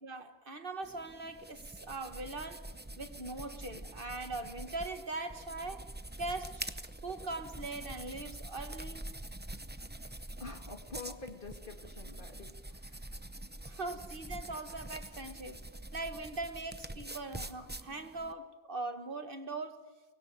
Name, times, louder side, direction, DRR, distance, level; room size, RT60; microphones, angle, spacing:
voice 1, 0.0-2.7 3.0-5.9 6.2-6.6 7.0-9.1 13.6-15.6 15.9-19.8, right 2 dB, 60° right, 1.7 m, -41 dB
sound 1, 0.8-18.3, right 1 dB, 10° right, 0.7 m, -45 dB
voice 2, 10.4-13.2, left 3 dB, 55° left, 2.6 m, -47 dB
24.0 x 20.5 x 9.6 m
omnidirectional pair, 1.1 m